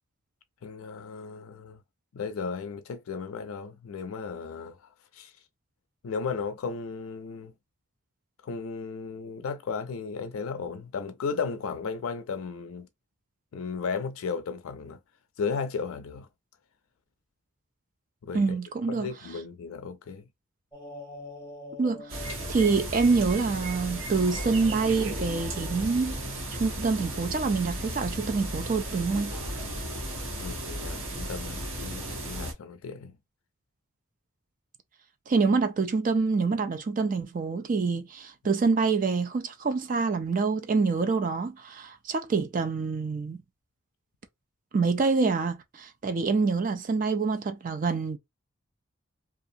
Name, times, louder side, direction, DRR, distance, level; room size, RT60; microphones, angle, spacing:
voice 1, 0.6-1.8 2.1-5.3 6.0-7.5 8.4-12.9 13.5-15.0 15.4-16.3 18.2-18.4 18.9-20.3 30.4-33.2, left 5 dB, 85° left, 0.4 m, -35 dB
voice 2, 18.3-19.1 21.8-26.2 26.5-29.3 35.3-43.4 44.7-48.2, right 4 dB, 40° right, 0.3 m, -26 dB
sound 1, 20.7-26.2, left 1 dB, 10° right, 1.5 m, -46 dB
sound 2, 22.1-32.5, right 1 dB, 75° right, 1.2 m, -35 dB
2.6 x 2.3 x 2.6 m
head